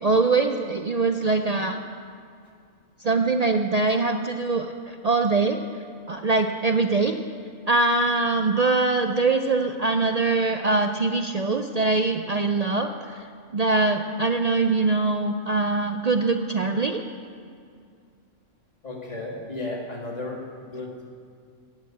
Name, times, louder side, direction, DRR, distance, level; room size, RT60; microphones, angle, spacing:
voice 1, 0.0-1.8 3.0-5.6 6.1-7.2 7.7-12.9 13.5-17.0, right 3 dB, 55° right, 6 dB, 0.4 m, -23 dB
voice 2, 18.8-21.1, left 2 dB, 30° left, -2 dB, 2.2 m, -34 dB
16.0 x 6.3 x 8.6 m, 2.3 s
omnidirectional pair, 1.4 m